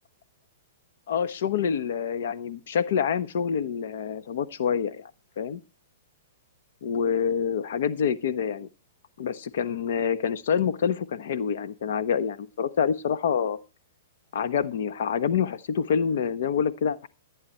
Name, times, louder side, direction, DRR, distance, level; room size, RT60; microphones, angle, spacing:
voice 1, 1.1-5.1 5.4-5.6 6.8-8.7 9.2-13.6 14.3-17.1, left 7 dB, 65° left, 14 dB, 1.0 m, -27 dB
14.0 x 9.6 x 4.4 m, 0.30 s
hypercardioid pair, 155°, 0 cm